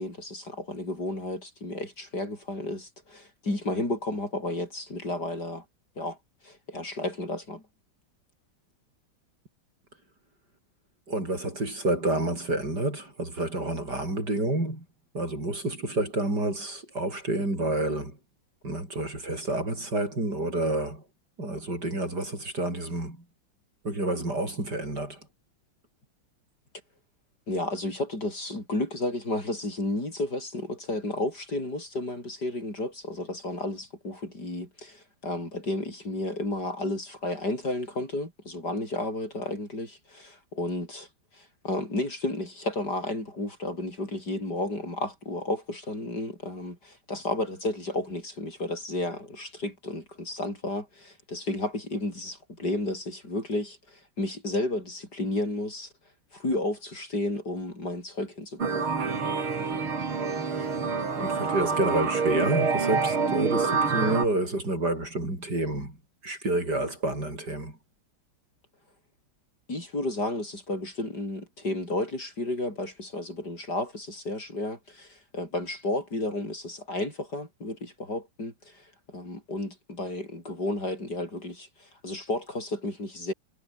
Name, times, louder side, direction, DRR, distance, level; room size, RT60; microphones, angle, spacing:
voice 1, 0.0-5.6 6.0-6.2 6.4-7.6 27.5-41.1 41.3-55.9 56.3-58.9 69.7-83.3, left 2 dB, 50° left, 8.3 m, -32 dB
voice 2, 11.1-14.8 15.1-18.2 18.6-21.0 21.4-23.2 23.8-25.2 61.2-66.0 66.2-67.8, right 2 dB, 50° right, 8.5 m, -29 dB
sound 1, 58.6-64.3, right 5 dB, 85° right, 4.4 m, -27 dB
omnidirectional pair, 2.2 m